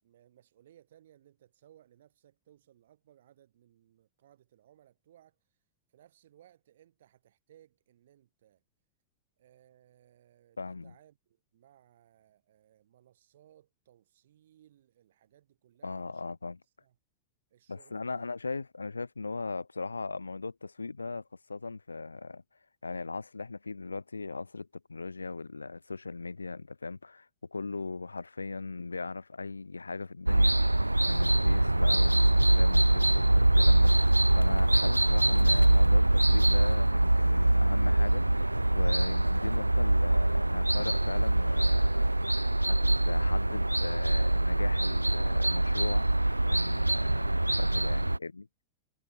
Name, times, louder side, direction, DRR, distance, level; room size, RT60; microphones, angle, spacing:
voice 1, 0.0-5.4 5.9-8.6 9.4-16.3 16.8-17.0 17.5-18.3, right 11 dB, 60° right, 7.0 m, -62 dB
voice 2, 10.6-10.9 15.8-16.6 17.7-22.4 22.8-42.8 43.0-48.5, left 3 dB, 80° left, 0.9 m, -39 dB
sound 1, 30.3-48.2, right 1 dB, 85° right, 0.3 m, -24 dB
figure-of-eight pair, 90°, 0 cm